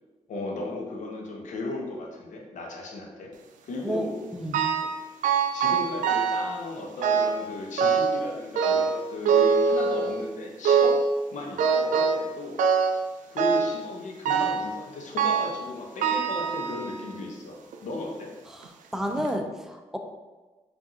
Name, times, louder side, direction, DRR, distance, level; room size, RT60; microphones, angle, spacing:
voice 1, 0.3-3.3 3.6-4.2 5.5-11.0 11.3-12.6 13.3-18.3, left 2 dB, 70° left, 0 dB, 0.8 m, -35 dB
voice 2, 3.8-4.6 18.9-20.0, equal, 5° right, 4 dB, 0.5 m, -30 dB
sound 1, 4.5-5.0 5.2-6.5 7.0-7.4 7.8-8.2 8.6-10.2 10.6-11.1 11.6-12.3 12.6-13.0 13.4-13.8 14.2-14.7 15.2-15.6 16.0-17.1 17.7-17.8 18.6-18.7 19.2-19.3, right 6 dB, 80° right, 0.4 m, -23 dB
4.8 x 2.6 x 2.7 m, 1.3 s
cardioid pair, 65°, 13 cm